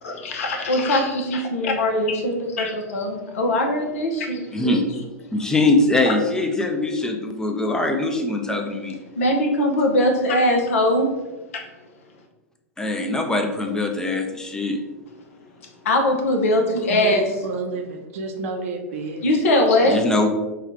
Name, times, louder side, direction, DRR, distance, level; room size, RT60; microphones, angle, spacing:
voice 1, 0.0-4.8 6.1-6.2 9.1-11.1 11.5-11.6 15.8-17.4 19.2-20.0, left 1 dB, 60° left, 3 dB, 0.8 m, -21 dB
voice 2, 4.5-4.9 5.3-9.0 12.8-14.8 19.9-20.3, left 2 dB, 5° left, 4 dB, 0.6 m, -22 dB
voice 3, 17.3-19.4, right 3 dB, 60° right, 3 dB, 0.7 m, -31 dB
5.7 x 2.3 x 3.2 m, 1.1 s
figure-of-eight pair, 95°, 8 cm